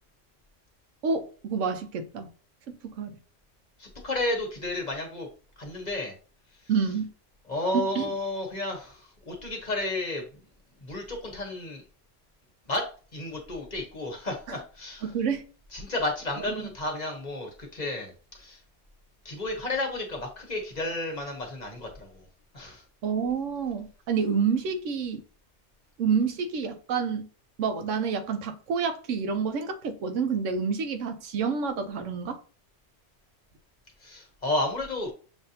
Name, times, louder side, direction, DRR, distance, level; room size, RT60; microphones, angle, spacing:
voice 1, 1.0-2.3 2.7-3.2 6.7-7.1 7.7-8.1 15.0-15.5 16.4-16.7 23.0-25.2 26.0-27.3 27.6-32.4, right 6 dB, 80° right, 1.0 m, -28 dB
voice 2, 3.8-5.3 5.6-6.2 7.5-10.4 10.8-11.8 12.7-12.9 13.1-15.1 15.7-18.6 19.2-22.3 22.5-22.8 34.0-35.1, left 2 dB, 35° left, 1.2 m, -32 dB
7.0 x 2.6 x 2.8 m
omnidirectional pair, 1.3 m